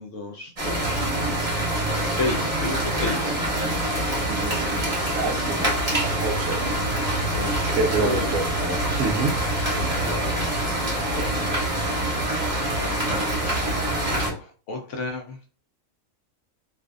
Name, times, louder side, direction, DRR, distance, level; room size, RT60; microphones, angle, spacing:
voice 1, 0.0-1.7 2.1-3.4 7.3-8.4 9.7-15.4, left 2 dB, 65° left, 2 dB, 0.8 m, -34 dB
sound 1, 0.6-14.3, right 1 dB, 30° right, 0.9 m, -25 dB
voice 2, 4.3-5.7 6.2-6.6 7.8-9.3 12.1-12.2, right 3 dB, 70° right, 4 dB, 0.9 m, -27 dB
2.5 x 2.4 x 2.3 m, 0.38 s
omnidirectional pair, 1.5 m